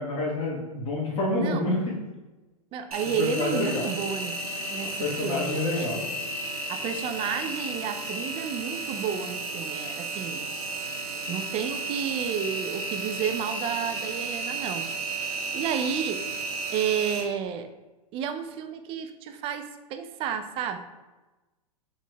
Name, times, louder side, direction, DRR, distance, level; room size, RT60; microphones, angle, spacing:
voice 1, 0.0-2.0 3.2-3.9 5.0-6.0, left 2 dB, 30° left, -4 dB, 1.2 m, -28 dB
voice 2, 1.4-1.7 2.7-5.9 6.7-10.5 11.3-14.9 15.5-16.2 16.7-17.7 18.1-20.8, right 7 dB, 30° right, 7 dB, 0.4 m, -31 dB
Engine, 2.9-17.2, right 3 dB, 75° right, 1.1 m, -33 dB
5.4 x 3.0 x 2.2 m, 1.1 s
hypercardioid pair, 105°, 19 cm